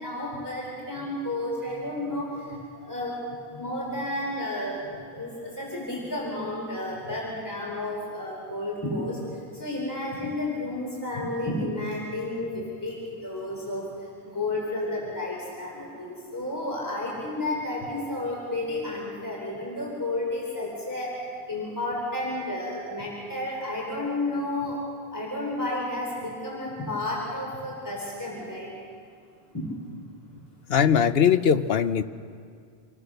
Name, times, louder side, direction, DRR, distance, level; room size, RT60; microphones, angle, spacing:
voice 1, 0.0-21.1 21.5-24.8 25.1-28.7 29.5-29.7 30.3-30.4, left 1 dB, 20° left, -4 dB, 4.6 m, -32 dB
voice 2, 30.7-32.0, left 7 dB, 70° left, 12 dB, 1.1 m, -20 dB
27.5 x 22.0 x 6.7 m, 2.2 s
omnidirectional pair, 1.1 m